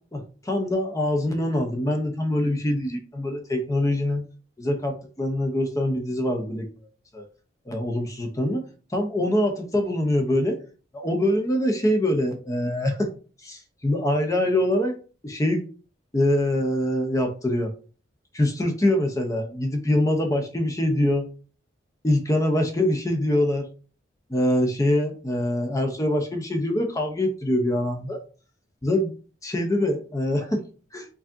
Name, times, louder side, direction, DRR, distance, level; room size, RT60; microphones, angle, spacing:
voice 1, 0.1-4.3 4.6-6.7 7.1-7.2 7.7-8.6 8.9-10.6 10.9-13.1 13.4-14.9 15.2-15.6 16.1-17.7 18.3-21.3 22.0-23.6 24.3-28.2 28.8-29.1 29.4-30.6 30.9-31.1, left 1 dB, 15° left, 3 dB, 0.5 m, -24 dB
4.6 x 2.7 x 2.5 m, 0.39 s
head